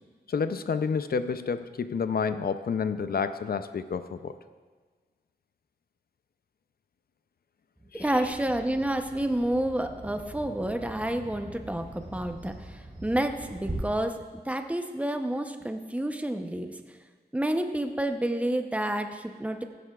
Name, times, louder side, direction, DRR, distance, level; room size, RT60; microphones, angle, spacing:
voice 1, 0.3-4.3 7.9-8.1, left 5 dB, 65° left, 11 dB, 0.5 m, -29 dB
voice 2, 7.9-12.5 13.0-16.7 17.3-19.6, right 1 dB, 10° right, 6 dB, 0.7 m, -29 dB
Bird vocalization bird call bird song, 8.0-13.7, right 1 dB, 25° right, 3.4 m, -44 dB
15.5 x 11.0 x 2.4 m, 1.5 s
wide cardioid pair, 100°, 17 cm